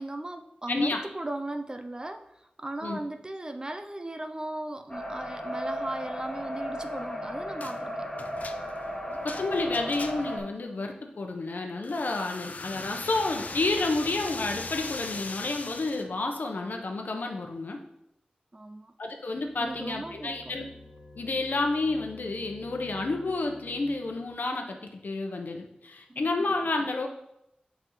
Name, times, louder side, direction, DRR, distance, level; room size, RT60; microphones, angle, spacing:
voice 1, 0.0-2.3 2.6-8.1 18.5-18.9 19.6-20.5 26.1-26.3, right 1 dB, 25° right, 7 dB, 0.5 m, -37 dB
voice 2, 0.7-1.0 2.8-3.0 9.1-17.8 19.0-20.7 21.2-27.1, left 2 dB, 75° left, 3 dB, 0.9 m, -30 dB
sound 1, 4.9-10.4, equal, 25° left, 1.5 m, -35 dB
sound 2, 7.6-7.8 8.2-10.4 11.8-16.1, left 3 dB, 55° left, 0.4 m, -40 dB
sound 3, 19.3-24.5, left 1 dB, 45° right, 2.6 m, -50 dB
7.8 x 5.4 x 3.1 m, 0.83 s
wide cardioid pair, 80°, 3 cm